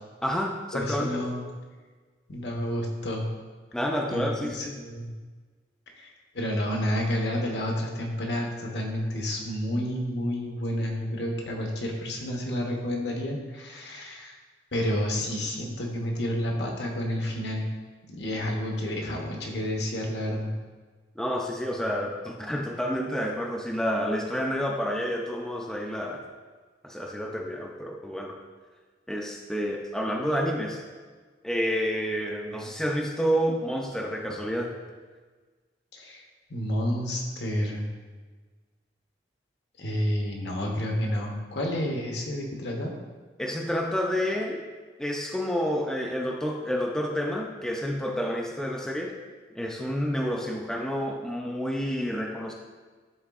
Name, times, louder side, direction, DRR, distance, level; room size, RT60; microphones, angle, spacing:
voice 1, 0.2-1.3 3.7-4.8 21.2-26.2 26.8-28.4 29.1-30.8 31.4-34.8 43.4-44.6 45.0-49.1 49.5-52.5, equal, 5° left, -1 dB, 0.4 m, -29 dB
voice 2, 0.7-1.5 2.3-3.3 4.1-5.1 5.9-14.4 14.7-17.7 18.1-20.5 35.9-36.2 36.5-37.8 39.8-42.9, equal, 65° left, 0 dB, 1.0 m, -30 dB
10.5 x 3.8 x 2.4 m, 1.4 s
head